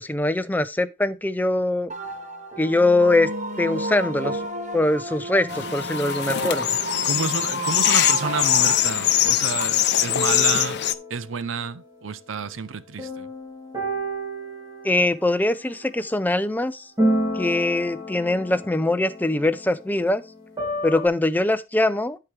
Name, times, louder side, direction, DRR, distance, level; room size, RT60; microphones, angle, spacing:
voice 1, 0.0-1.9 2.6-3.3 3.6-4.4 4.7-6.8 14.8-16.8 17.3-20.2 20.8-22.2, left 2 dB, 10° left, 0.5 m, -22 dB
sound 1, 1.9-8.8, right 1 dB, 35° right, 1.0 m, -31 dB
sound 2, 2.0-7.5 8.2-9.8 10.1-11.4 13.0-16.0 17.0-21.1, equal, 20° right, 2.7 m, -32 dB
sound 3, 5.5-10.9, left 12 dB, 55° left, 0.6 m, -22 dB
voice 2, 7.0-10.8 11.1-13.3, right 5 dB, 70° right, 0.7 m, -30 dB
13.5 x 4.7 x 3.3 m
head